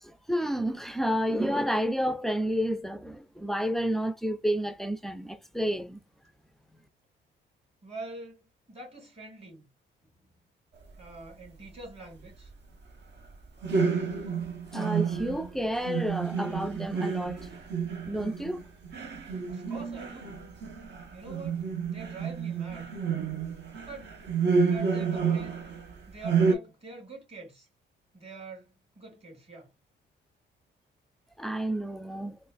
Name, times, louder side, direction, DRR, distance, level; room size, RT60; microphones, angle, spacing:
voice 1, 0.0-6.0 14.7-17.5 18.1-18.6 31.4-32.4, equal, ahead, 0.4 m, -30 dB
voice 2, 7.8-9.7 11.0-12.5 19.5-20.4 21.1-22.9 23.8-24.1 24.7-25.6 26.1-27.7 28.1-29.7, right 3 dB, 30° right, 2.1 m, -45 dB
sound 1, 13.6-25.9 26.2-26.5, right 5 dB, 60° right, 1.0 m, -30 dB
3.7 x 2.5 x 2.4 m
cardioid pair, 90°, 20 cm